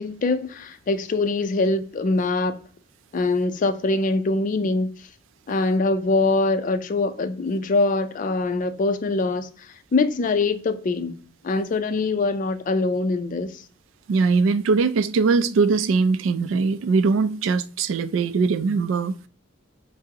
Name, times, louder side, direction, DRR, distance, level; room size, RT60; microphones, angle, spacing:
voice 1, 0.0-2.6 3.1-4.9 5.5-9.5 9.9-13.6, left 3 dB, 45° left, 0.4 m, -23 dB
voice 2, 14.1-19.1, right 4 dB, 85° right, 0.3 m, -21 dB
5.8 x 2.0 x 2.8 m
head